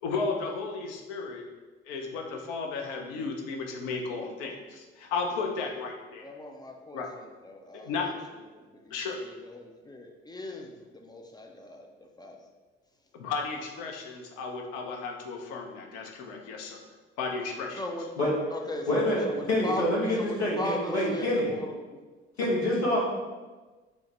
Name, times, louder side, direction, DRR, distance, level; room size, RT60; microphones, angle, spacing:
voice 1, 0.0-1.5 1.9-6.3 6.9-7.1 7.7-8.1 8.9-9.2 13.1-16.8 17.2-17.8, left 4 dB, 60° left, 2 dB, 0.7 m, -34 dB
voice 2, 6.2-8.1 8.5-11.9 12.2-12.4 17.8-18.1 18.5-19.8 20.2-22.0, left 1 dB, 15° left, 1 dB, 0.4 m, -39 dB
voice 3, 18.9-21.5 22.4-23.1, left 1 dB, 80° left, -5 dB, 1.0 m, -26 dB
6.0 x 2.1 x 3.0 m, 1.3 s
figure-of-eight pair, 50°, 32 cm